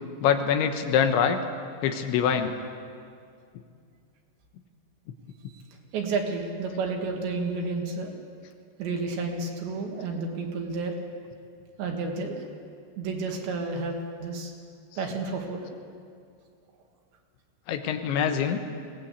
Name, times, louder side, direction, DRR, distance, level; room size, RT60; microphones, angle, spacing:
voice 1, 0.2-1.4 1.8-2.5 14.9-15.0 17.7-18.6, left 8 dB, 80° left, 6 dB, 3.3 m, -24 dB
voice 2, 5.9-8.1 8.8-10.9 11.8-12.5 13.0-14.5 15.0-15.7, right 3 dB, 70° right, 2 dB, 4.1 m, -31 dB
22.0 x 17.5 x 8.2 m, 2.3 s
omnidirectional pair, 5.5 m